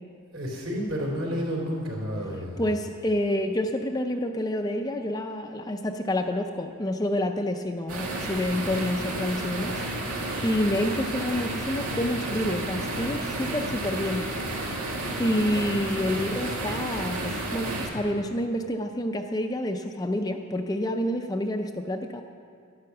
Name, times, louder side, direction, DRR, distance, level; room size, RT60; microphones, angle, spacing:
voice 1, 0.3-2.6, equal, 60° right, -1 dB, 3.4 m, -30 dB
voice 2, 2.6-9.7 10.4-14.3 15.2-22.2, left 1 dB, 15° left, 5 dB, 0.5 m, -28 dB
sound 1, 7.9-17.9, right 1 dB, 90° right, 2.2 m, -31 dB
11.5 x 11.0 x 7.1 m, 2.2 s
head